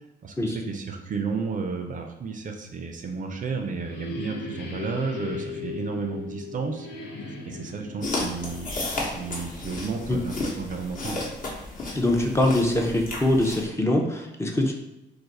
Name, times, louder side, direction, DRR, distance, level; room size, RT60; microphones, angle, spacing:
voice 1, 0.2-8.7 9.1-11.2, right 5 dB, 40° right, 4 dB, 0.4 m, -32 dB
sound 1, 3.0-9.7, left 4 dB, 65° left, 0.7 m, -38 dB
sound 2, 8.0-13.6, left 2 dB, 45° left, 1.0 m, -33 dB
voice 2, 11.9-14.7, left 1 dB, 15° left, 1 dB, 0.5 m, -23 dB
2.5 x 2.4 x 4.0 m, 0.94 s
cardioid pair, 90°, 20 cm